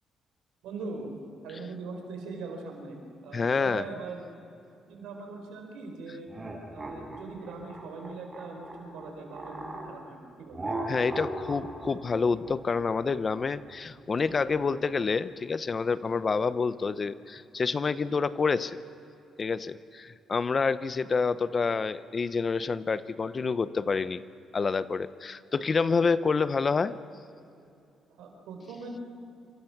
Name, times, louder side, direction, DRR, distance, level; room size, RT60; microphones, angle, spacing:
voice 1, 0.6-1.1 1.4-4.3 4.9-6.3 6.7-10.6 28.2-29.0, right 3 dB, 90° right, 2 dB, 4.7 m, -41 dB
voice 2, 3.3-3.9 10.9-18.8 19.4-24.2 24.5-27.0, left 4 dB, 35° left, 14 dB, 0.8 m, -28 dB
sound 1, 6.3-9.9 10.5-15.0, right 2 dB, 25° right, 6.1 m, -39 dB
27.0 x 24.5 x 6.0 m, 2.6 s
cardioid pair, 90°, 0 cm